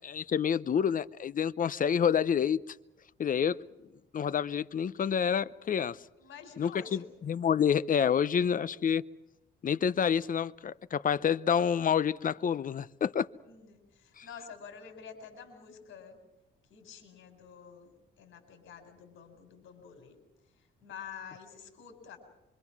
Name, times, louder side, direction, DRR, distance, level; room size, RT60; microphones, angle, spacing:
voice 1, 0.0-2.6 3.2-3.6 4.1-6.0 6.6-9.0 9.6-13.3 14.2-14.3, left 8 dB, 45° left, 0.8 m, -28 dB
voice 2, 6.2-7.0 13.5-16.2 16.7-20.2 20.8-22.2, left 7 dB, 75° left, 4.6 m, -49 dB
26.0 x 24.0 x 6.0 m
cardioid pair, 90°, 20 cm